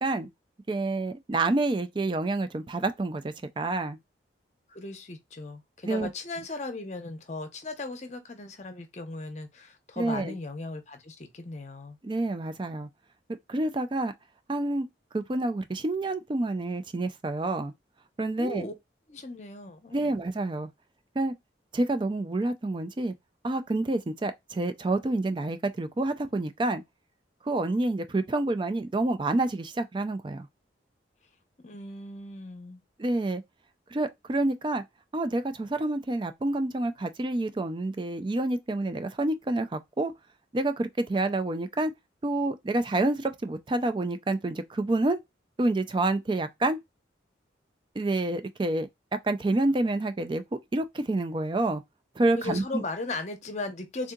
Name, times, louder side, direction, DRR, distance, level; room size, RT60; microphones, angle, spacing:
voice 1, 0.7-4.0 5.8-6.1 10.0-10.4 12.0-12.9 13.5-14.1 14.5-14.9 15.1-17.7 18.2-18.7 19.9-20.7 21.2-21.3 21.7-23.1 23.4-26.8 27.4-30.5 33.0-33.4 33.9-34.8 35.1-40.1 40.5-41.9 42.2-45.2 45.6-46.8 48.0-48.9 49.2-50.4 50.7-51.8 52.2-52.8, right 2 dB, 25° right, 0.3 m, -28 dB
voice 2, 4.7-12.0 18.4-18.7 19.1-20.1 31.6-32.8 52.4-54.1, left 2 dB, 40° left, 0.7 m, -37 dB
3.6 x 2.7 x 2.3 m
head